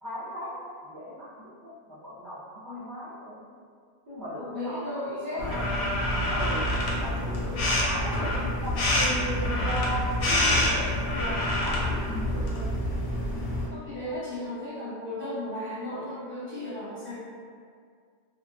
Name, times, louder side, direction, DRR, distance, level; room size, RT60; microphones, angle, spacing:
voice 1, 0.0-3.5 4.1-5.8 6.3-12.9, equal, 25° right, -13 dB, 0.4 m, -37 dB
voice 2, 4.3-5.6 13.7-17.2, left 1 dB, 10° left, -12 dB, 0.8 m, -35 dB
sound 1, 5.4-13.7, left 1 dB, 90° left, 0.9 m, -27 dB
2.3 x 2.2 x 2.4 m, 2.1 s
omnidirectional pair, 1.2 m